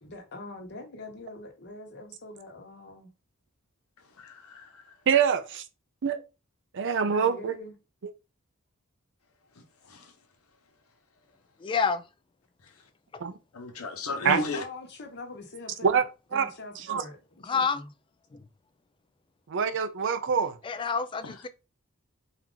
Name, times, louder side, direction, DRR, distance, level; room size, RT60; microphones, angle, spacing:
voice 1, 0.0-3.1 7.1-7.7 14.4-17.9, left 2 dB, 55° left, 1.1 m, -43 dB
voice 2, 4.2-4.9 9.8-10.1 13.5-14.6 21.2-21.3, left 2 dB, 85° left, 1.1 m, -34 dB
voice 3, 5.1-5.6 6.0-6.2 6.7-7.6 13.2-13.3 14.2-14.4 15.8-16.0 16.3-16.5 16.9-17.0 19.5-20.6, right 7 dB, 60° right, 0.5 m, -25 dB
voice 4, 11.6-12.0 13.1-13.2 17.4-17.8 18.3-18.4 20.6-21.5, left 5 dB, 25° left, 0.3 m, -28 dB
4.5 x 2.5 x 3.7 m
head